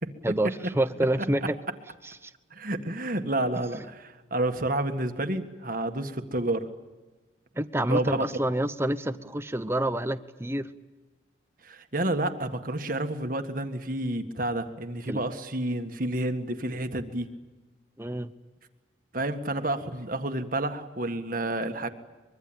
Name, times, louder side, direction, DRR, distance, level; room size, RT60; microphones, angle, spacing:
voice 1, 0.2-1.6 2.2-2.3 3.7-3.8 7.6-10.7 15.1-15.2 18.0-18.3, right 1 dB, 15° right, 11 dB, 0.9 m, -28 dB
voice 2, 2.5-6.6 7.9-8.3 11.6-17.3 19.1-21.9, right 1 dB, 45° right, 7 dB, 1.7 m, -30 dB
24.5 x 23.0 x 8.9 m, 1.2 s
head